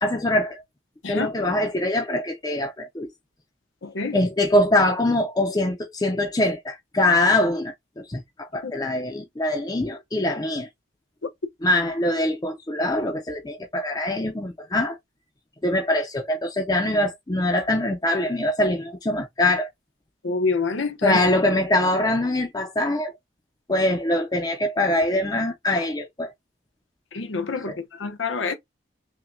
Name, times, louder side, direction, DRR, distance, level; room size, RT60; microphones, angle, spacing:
voice 1, 0.0-0.6 1.1-3.1 4.1-10.7 11.6-15.0 15.6-19.7 21.0-23.1 23.7-26.3 27.7-27.8, left 1 dB, 20° left, 0.5 m, -23 dB
voice 2, 3.8-4.2 8.6-8.7 20.2-21.2 27.1-28.5, left 4 dB, 90° left, 0.8 m, -27 dB
5.6 x 2.2 x 2.6 m
head